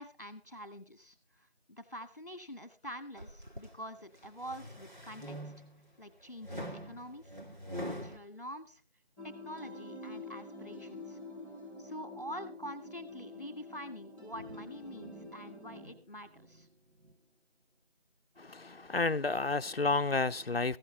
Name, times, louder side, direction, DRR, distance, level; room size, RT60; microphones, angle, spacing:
voice 1, 0.0-5.5 6.0-7.3 7.8-8.8 9.2-11.2 11.8-16.7, equal, 40° left, 2.2 m, -46 dB
sound 1, 3.2-3.7 4.2-5.9 6.4-8.2, equal, 45° right, 2.0 m, -43 dB
sound 2, 9.2-15.9, left 2 dB, 30° right, 5.1 m, -47 dB
sound 3, 14.3-17.2, left 1 dB, 65° right, 2.1 m, -53 dB
voice 2, 18.4-20.8, left 3 dB, 65° left, 0.7 m, -31 dB
15.5 x 13.5 x 4.0 m
figure-of-eight pair, 180°, 32 cm